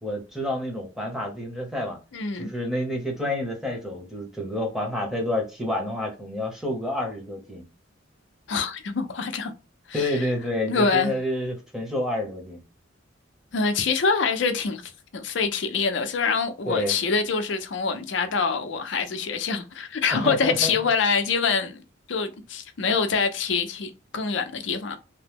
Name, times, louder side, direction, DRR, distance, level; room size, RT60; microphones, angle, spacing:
voice 1, 0.0-2.0 2.4-7.6 9.9-12.6 16.7-17.0 20.1-20.7, left 1 dB, ahead, 0.8 m, -29 dB
voice 2, 2.1-2.5 8.5-9.5 9.9-10.3 10.6-11.2 13.5-21.8 22.1-25.0, left 5 dB, 60° left, 0.5 m, -25 dB
2.9 x 2.0 x 3.4 m
head